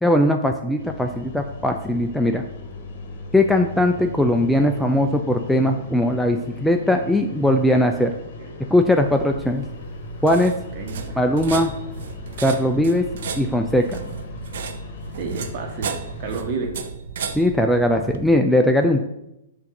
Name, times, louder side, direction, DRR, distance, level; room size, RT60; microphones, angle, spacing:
voice 1, 0.0-2.4 3.3-8.1 8.7-9.7 10.2-10.5 11.2-11.7 12.4-13.0 13.4-14.0 17.3-19.0, left 1 dB, ahead, 3 dB, 0.3 m, -19 dB
sound 1, 0.8-16.4, left 4 dB, 55° left, 1.1 m, -37 dB
voice 2, 8.4-8.7 10.7-11.2 15.2-16.8, right 4 dB, 40° right, 3 dB, 1.1 m, -31 dB
sound 2, 9.0-18.3, right 6 dB, 70° right, 0.6 m, -34 dB
7.1 x 2.6 x 5.1 m, 0.87 s
hypercardioid pair, 140°, 0 cm